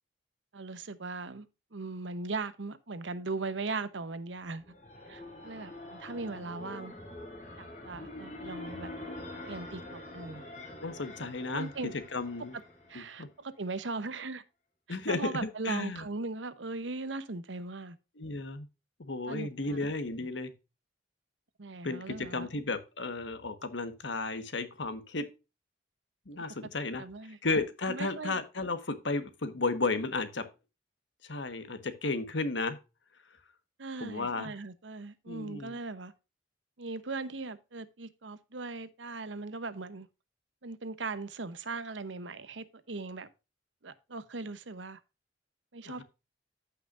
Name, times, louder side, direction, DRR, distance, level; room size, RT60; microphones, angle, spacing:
voice 1, 0.5-4.7 5.1-7.0 7.6-8.9 9.5-10.4 11.5-11.9 12.5-12.6 12.9-14.4 14.9-18.0 19.3-19.8 21.6-22.5 27.0-27.4 27.9-28.3 33.8-36.1 36.8-40.1 40.6-43.3 43.8-45.0 45.7-46.0, right 3 dB, 80° right, 0.9 m, -39 dB
sound 1, 4.4-13.2, left 1 dB, 45° left, 5.5 m, -45 dB
voice 2, 10.8-11.7 12.1-12.5 12.9-13.3 14.9-16.0 18.2-18.7 19.0-20.5 21.8-25.3 26.3-30.5 31.2-32.8 34.0-34.5 35.3-35.7 45.8-46.0, left 3 dB, 80° left, 1.3 m, -34 dB
14.5 x 5.8 x 2.5 m
head